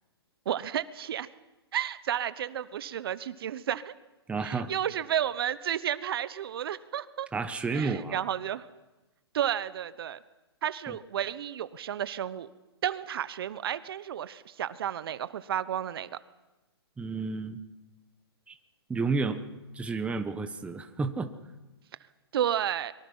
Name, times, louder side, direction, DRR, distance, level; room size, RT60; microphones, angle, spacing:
voice 1, 0.5-1.3 1.7-3.9 4.4-7.3 7.7-8.7 9.3-10.2 10.6-12.5 12.8-16.2 22.3-22.9, right 10 dB, 60° right, 15 dB, 1.1 m, -32 dB
voice 2, 4.3-4.7 7.3-8.2 10.9-11.0 17.0-17.6 18.5-18.6 18.9-19.4 19.7-21.3, right 4 dB, 10° right, 8 dB, 1.3 m, -31 dB
24.0 x 23.0 x 5.6 m, 1.1 s
hypercardioid pair, 135°, 14 cm